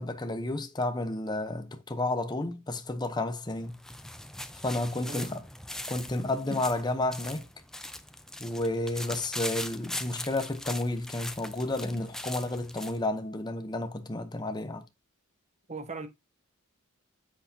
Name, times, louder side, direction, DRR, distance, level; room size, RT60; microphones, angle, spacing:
voice 1, 0.0-3.8 4.6-5.4 5.9-7.4 8.4-14.9, left 2 dB, 20° left, 0.8 m, -31 dB
sound 1, 3.5-13.0, left 1 dB, ahead, 0.5 m, -41 dB
voice 2, 15.7-16.1, right 3 dB, 30° right, 0.9 m, -38 dB
8.0 x 5.7 x 2.8 m
head